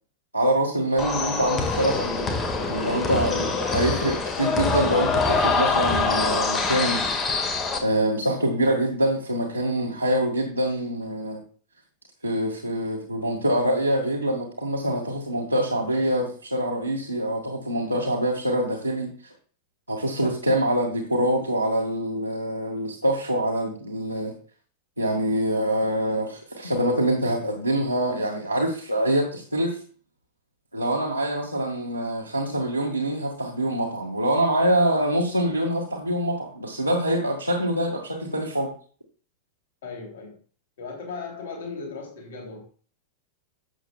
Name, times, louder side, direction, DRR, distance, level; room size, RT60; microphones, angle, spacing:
voice 1, 0.3-7.1 7.8-11.4 12.2-19.1 19.9-24.3 25.0-29.8 30.7-38.7, right 1 dB, 90° left, 0 dB, 1.7 m, -25 dB
sound 1, 1.0-7.8, left 4 dB, 25° left, 1.7 m, -24 dB
voice 2, 39.8-40.4 40.8-42.6, left 4 dB, 60° left, 2 dB, 2.9 m, -37 dB
12.0 x 7.7 x 2.3 m, 0.41 s
figure-of-eight pair, 90°, 0 cm